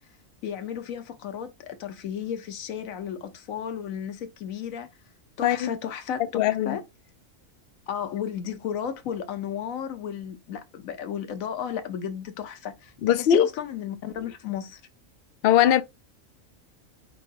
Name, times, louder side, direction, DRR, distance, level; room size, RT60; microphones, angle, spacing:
voice 1, 0.4-4.9 5.4-6.8 7.9-14.8, left 8 dB, 85° left, 1.2 m, -34 dB
voice 2, 5.4-5.7 6.3-6.8 13.0-13.5 15.4-15.8, left 10 dB, 65° left, 0.6 m, -20 dB
4.8 x 3.8 x 2.5 m
omnidirectional pair, 1.4 m